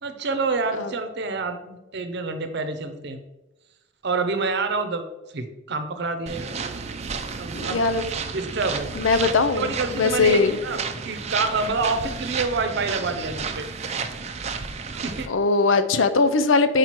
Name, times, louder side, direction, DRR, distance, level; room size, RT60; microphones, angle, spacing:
voice 1, 0.0-3.2 4.0-5.0 5.3-6.5 7.4-7.9 8.3-8.9 9.6-10.8 11.0-13.7 14.9-15.3, right 3 dB, 60° right, 8 dB, 0.8 m, -27 dB
sound 1, 6.3-15.3, right 5 dB, 35° right, 0.5 m, -32 dB
voice 2, 7.5-8.1 9.0-10.6 15.3-16.8, left 4 dB, 90° left, 10 dB, 0.6 m, -20 dB
4.9 x 4.6 x 5.9 m, 1.0 s
head